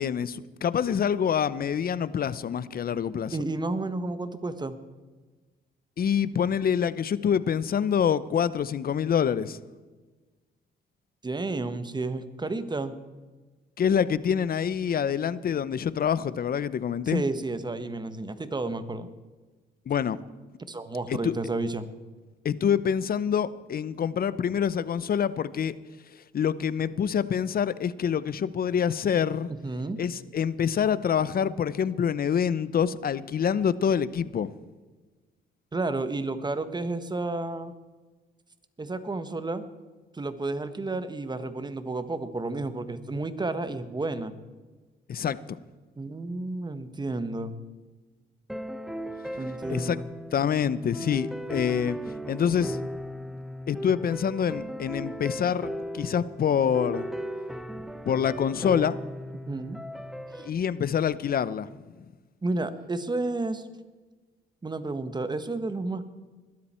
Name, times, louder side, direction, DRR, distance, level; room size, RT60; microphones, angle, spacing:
voice 1, 0.0-3.4 6.0-9.6 13.8-17.2 19.9-20.2 21.1-21.3 22.4-25.7 26.3-29.5 30.0-34.5 45.1-45.6 49.7-50.0 50.3-52.0 52.3-52.8 53.7-57.1 58.1-59.0 60.4-61.7 62.0-62.1, left 8 dB, 50° left, 17 dB, 0.8 m, -26 dB
voice 2, 3.3-4.8 11.2-12.9 17.1-19.1 20.7-21.9 29.6-30.0 35.7-37.7 38.8-39.6 40.1-44.3 46.0-47.5 49.3-50.1 59.5-59.8 60.3-60.5 62.4-63.6 64.6-66.0, right 2 dB, 20° right, 11 dB, 1.4 m, -31 dB
sound 1, 48.5-60.5, equal, ahead, 1.1 m, -36 dB
21.0 x 13.0 x 4.4 m, 1.3 s
cardioid pair, 90°, 20 cm